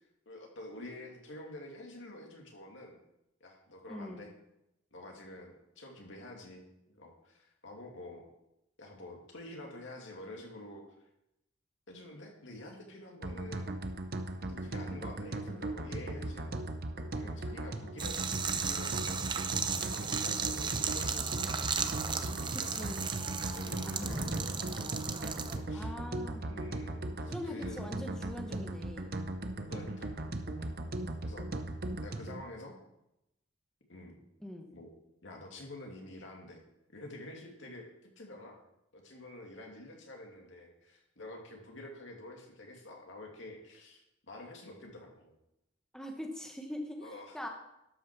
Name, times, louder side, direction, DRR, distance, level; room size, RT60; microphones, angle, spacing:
voice 1, 0.3-3.0 3.4-4.3 4.9-8.3 8.8-10.8 11.9-13.8 14.4-16.6 17.1-19.4 19.9-21.5 22.0-22.9 23.5-25.1 25.4-25.9 26.4-27.9 29.7-30.1 30.6-30.7 31.2-31.5 32.0-32.8 33.9-34.2 34.7-34.9 35.2-36.6 36.9-38.6 38.9-45.3 47.0-47.4, left 1 dB, 65° left, 1 dB, 2.4 m, -48 dB
voice 2, 3.9-4.3 22.7-23.0 23.8-24.7 25.7-26.6 27.3-29.1 31.0-31.2 34.4-34.7 45.9-47.1 47.3-47.5, left 1 dB, 5° left, 2 dB, 1.0 m, -43 dB
sound 1, 13.2-32.4, right 2 dB, 50° right, 0.8 m, -38 dB
sound 2, 18.0-25.6, right 5 dB, 25° right, 0.6 m, -35 dB
12.5 x 6.3 x 5.9 m, 0.86 s
head